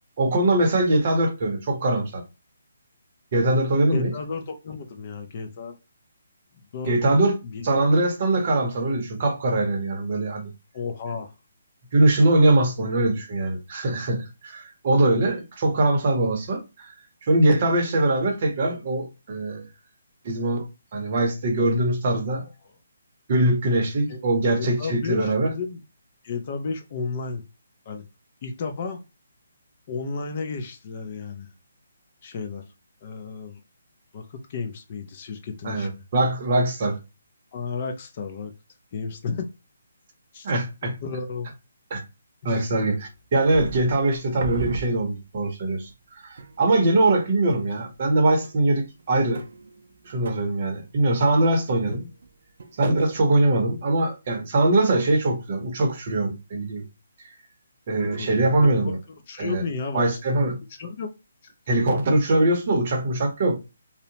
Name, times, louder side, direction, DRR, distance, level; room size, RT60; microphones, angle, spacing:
voice 1, 0.2-2.2 3.3-4.1 6.9-7.3 7.6-10.5 11.9-16.9 17.2-19.7 20.2-20.7 20.9-22.5 23.3-25.5 35.6-37.0 40.4-41.0 41.9-42.0 42.4-45.9 46.2-49.4 50.0-52.1 52.8-56.8 57.9-59.0 59.4-59.6 59.9-60.6 61.7-63.6, right 2 dB, 35° right, 0.7 m, -22 dB
voice 2, 3.9-5.8 6.7-7.0 7.4-7.8 10.7-11.3 22.4-22.5 24.1-24.2 24.5-25.8 26.2-27.5 27.9-28.1 28.4-29.0 29.9-31.5 32.2-32.6 33.0-33.6 34.1-36.0 37.5-38.5 38.9-39.5 40.3-40.5 41.0-41.5 42.4-42.6 58.1-59.0 59.3-61.1 61.4-61.5, left 4 dB, 30° left, 0.4 m, -33 dB
sound 1, 43.0-45.5 45.9-46.0 46.4-46.9 47.5-48.1 48.4-52.3 52.6-53.2, right 4 dB, 55° right, 0.3 m, -37 dB
2.7 x 2.0 x 2.7 m
hypercardioid pair, 170°, 0 cm